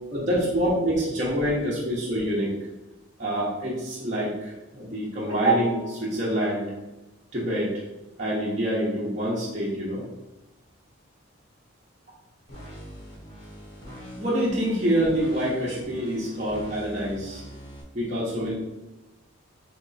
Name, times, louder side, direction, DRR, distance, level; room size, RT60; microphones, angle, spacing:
voice 1, 0.1-2.5 3.2-6.7 7.3-7.7 8.2-10.0 14.2-17.4 17.9-18.5, right 1 dB, 35° right, -8 dB, 1.0 m, -26 dB
sound 1, 12.5-17.8, equal, 85° left, 1.4 m, -43 dB
3.7 x 3.4 x 4.1 m, 1.0 s
head